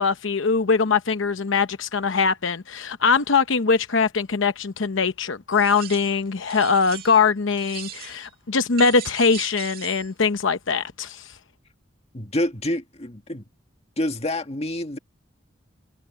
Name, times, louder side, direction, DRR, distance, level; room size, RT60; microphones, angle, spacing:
voice 1, 0.0-11.3, left 5 dB, 80° left, 0.8 m, -22 dB
sound 1, 5.5-6.2 6.5-7.3 7.6-8.3 8.8-10.1, right 11 dB, 50° right, 1.8 m, -39 dB
voice 2, 12.1-13.4 14.0-15.0, left 1 dB, 30° left, 1.8 m, -27 dB
head